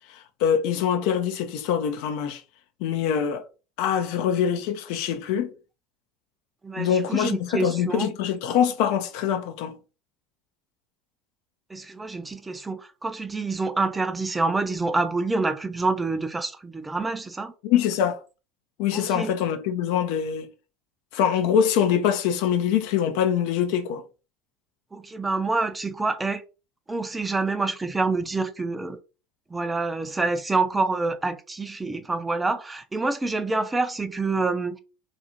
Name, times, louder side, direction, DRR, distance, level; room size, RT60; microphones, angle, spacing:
voice 1, 0.1-2.4 2.8-3.4 3.8-5.5 6.8-9.8 17.6-18.2 18.8-20.5 21.1-24.0, left 8 dB, 65° left, 0.4 m, -24 dB
voice 2, 6.6-8.1 11.7-17.5 18.9-19.3 24.9-26.4 26.9-29.0 29.5-34.8, right 3 dB, 15° right, 0.4 m, -27 dB
2.5 x 2.4 x 2.8 m
hypercardioid pair, 75°, 0 cm